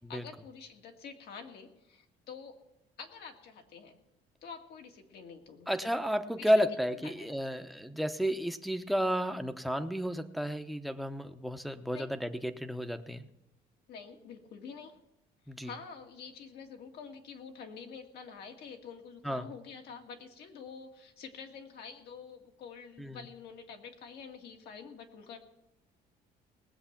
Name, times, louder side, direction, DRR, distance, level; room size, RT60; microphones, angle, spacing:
voice 1, 0.1-2.6 3.0-4.0 4.4-5.9 6.4-6.5 7.0-7.7 11.9-12.1 13.9-14.9 15.6-25.4, left 6 dB, 70° left, 3 dB, 2.1 m, -47 dB
voice 2, 5.7-13.3 15.5-15.7 19.2-19.4 23.0-23.2, equal, ahead, 7 dB, 0.9 m, -32 dB
19.5 x 7.8 x 5.9 m, 0.91 s
cardioid pair, 110°, 17 cm